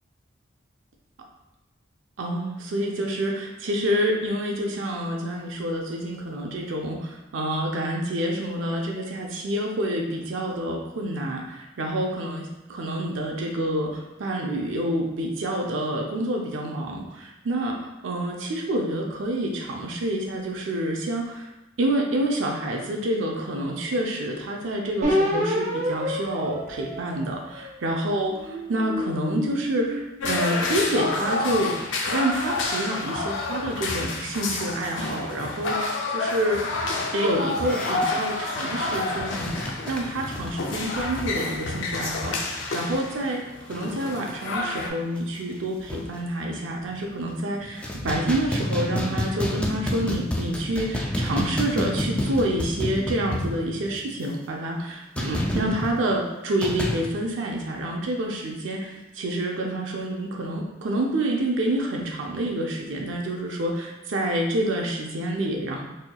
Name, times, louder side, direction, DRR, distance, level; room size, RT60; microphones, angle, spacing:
voice 1, 2.2-12.5 12.7-17.8 18.0-21.5 21.8-28.3 28.7-31.7 32.1-36.8 37.1-65.9, right 1 dB, 85° right, 0 dB, 0.5 m, -28 dB
sound 1, 25.0-27.7 28.3-30.8, equal, 40° right, 0.8 m, -29 dB
sound 2, 30.2-44.9, left 3 dB, 75° left, 0.5 m, -29 dB
sound 3, 37.6-42.7 43.0-43.2 43.5-43.9 44.3-44.4 44.8-44.9 45.2-46.2 46.8-47.3 47.6-54.0 55.2-55.9 56.6-57.1, left 1 dB, 5° left, 0.3 m, -30 dB
4.2 x 2.8 x 2.2 m, 1.0 s
head